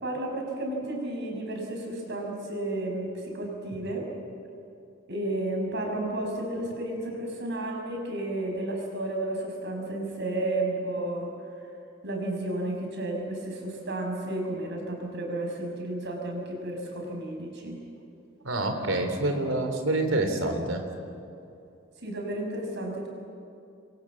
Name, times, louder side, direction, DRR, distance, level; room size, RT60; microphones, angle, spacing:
voice 1, 0.0-4.1 5.1-11.3 12.0-17.8 22.0-23.1, right 1 dB, 60° right, 1 dB, 6.2 m, -32 dB
voice 2, 18.4-20.8, right 2 dB, 80° right, 5 dB, 3.4 m, -27 dB
28.0 x 23.0 x 7.4 m, 2.7 s
head